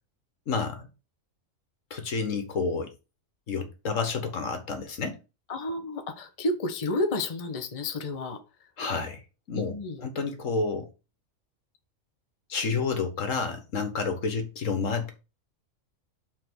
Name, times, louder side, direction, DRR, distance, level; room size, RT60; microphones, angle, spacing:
voice 1, 0.5-0.9 1.9-2.9 3.5-5.2 8.8-9.2 9.5-9.7 10.0-10.9 12.5-15.1, left 4 dB, 70° left, 1.7 m, -29 dB
voice 2, 5.5-8.7 9.5-10.1, left 2 dB, 30° left, 0.9 m, -31 dB
5.8 x 4.3 x 6.1 m
omnidirectional pair, 1.4 m